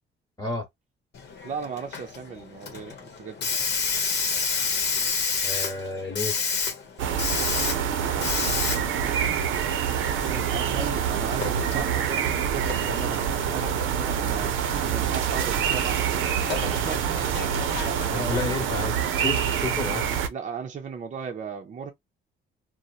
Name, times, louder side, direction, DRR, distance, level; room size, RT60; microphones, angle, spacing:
Hiss, 1.1-19.5, left 5 dB, 60° left, 0.8 m, -32 dB
voice 1, 1.4-3.5 10.3-14.6 14.8-18.9 20.3-21.9, right 6 dB, 40° right, 0.6 m, -37 dB
voice 2, 5.4-6.3 18.1-20.2, left 3 dB, 20° left, 1.1 m, -31 dB
sound 1, 7.0-20.3, right 8 dB, 80° right, 0.6 m, -26 dB
2.8 x 2.1 x 2.4 m
cardioid pair, 90°, 20 cm